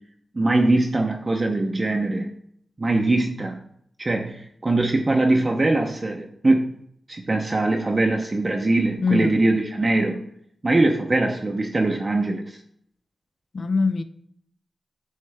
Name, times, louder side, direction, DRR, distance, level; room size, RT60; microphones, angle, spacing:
voice 1, 0.3-2.3 2.8-3.6 4.0-6.8 7.1-10.2 10.6-12.6, right 2 dB, 30° right, 0.6 m, -22 dB
voice 2, 9.0-9.3 13.5-14.0, left 4 dB, 55° left, 0.5 m, -22 dB
9.3 x 3.2 x 3.3 m
cardioid pair, 75°, 0 cm